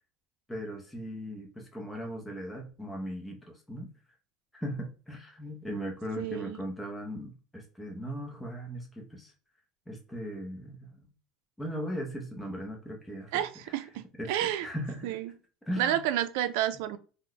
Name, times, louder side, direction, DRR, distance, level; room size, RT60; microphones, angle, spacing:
voice 1, 0.5-3.9 4.5-9.3 9.9-11.1 11.6-13.4 14.2-14.3 14.6-15.2 15.6-16.0, equal, 5° left, 0.6 m, -38 dB
voice 2, 6.2-6.6 13.3-14.7 15.0-15.3 15.8-17.0, right 12 dB, 80° right, 0.4 m, -30 dB
2.9 x 2.1 x 3.8 m
cardioid pair, 165°, 0 cm